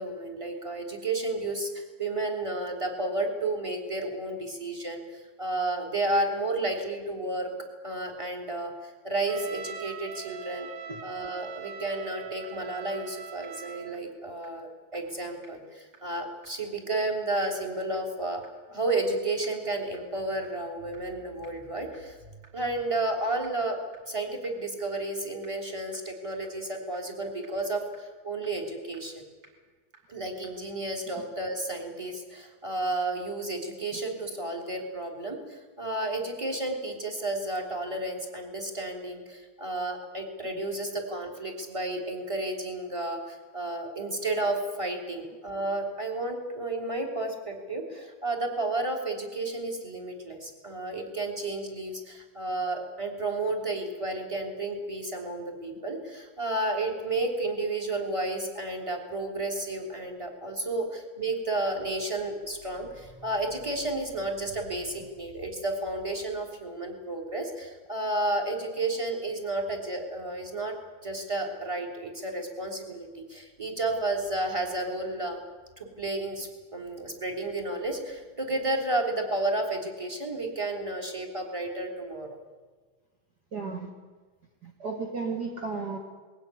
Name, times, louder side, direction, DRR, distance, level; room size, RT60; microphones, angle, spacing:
voice 1, 0.0-7.5 7.8-10.7 11.0-18.4 18.7-22.2 22.5-23.8 24.1-29.2 30.1-70.7 71.0-75.4 75.8-82.3, right 2 dB, 10° right, 2 dB, 2.4 m, -32 dB
Trumpet, 9.3-14.0, right 8 dB, 75° right, 3.1 m, -42 dB
sound 1, 11.5-11.6 11.9-12.0 12.4-12.5 12.9-13.0 13.4-13.5 13.9-14.0 14.4-14.5 14.9-15.0 15.4-15.5 15.9-16.0 16.4-16.5 16.9-17.0 17.4-17.5 17.9-18.0 18.4-18.5 18.9-19.0 19.4-19.5 19.9-20.0 20.4-20.5 20.9-21.0 21.4-21.5 21.9-22.0 22.4-22.5 22.9-23.0 23.4-23.5 23.9-24.0 24.4-24.5 24.9-25.0 25.4-25.5 25.9-26.0 26.4-26.5 26.9-27.0 27.4-27.5 27.9-28.0 28.4-28.5 28.9-29.0 29.4-29.5 29.9-30.0 30.4-30.5, right 3 dB, 25° right, 5.0 m, -53 dB
voice 2, 83.5-83.9 84.6-86.0, right 4 dB, 50° right, 1 dB, 1.1 m, -33 dB
21.5 x 16.5 x 9.7 m, 1.4 s
omnidirectional pair, 5.2 m